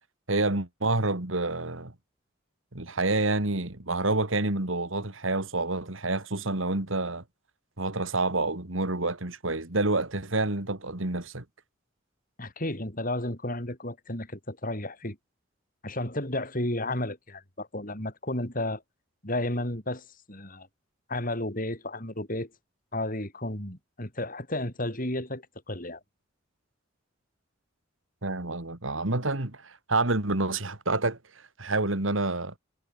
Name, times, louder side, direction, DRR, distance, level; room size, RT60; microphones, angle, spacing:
voice 1, 0.3-1.9 2.7-7.2 7.8-11.4 28.2-32.5, right 2 dB, 75° right, 2.6 m, -28 dB
voice 2, 12.4-15.2 15.8-18.8 19.2-20.7 21.1-22.5 22.9-26.0, left 1 dB, 40° left, 6.7 m, -32 dB
head